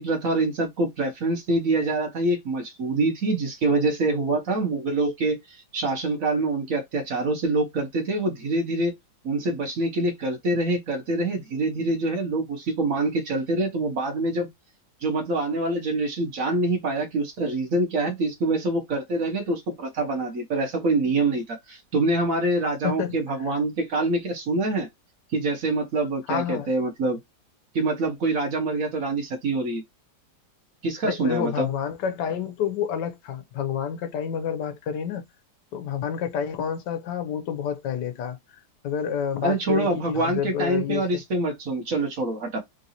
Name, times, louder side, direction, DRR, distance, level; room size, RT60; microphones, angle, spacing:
voice 1, 0.0-5.4 5.7-8.9 9.2-14.5 15.0-24.9 25.3-27.2 27.7-29.8 30.8-31.7 39.4-42.6, right 2 dB, 55° right, 1.4 m, -25 dB
voice 2, 22.8-23.2 26.3-26.7 31.0-35.2 35.7-38.4 38.8-41.2, left 8 dB, 90° left, 1.4 m, -29 dB
3.7 x 2.7 x 2.8 m
omnidirectional pair, 1.8 m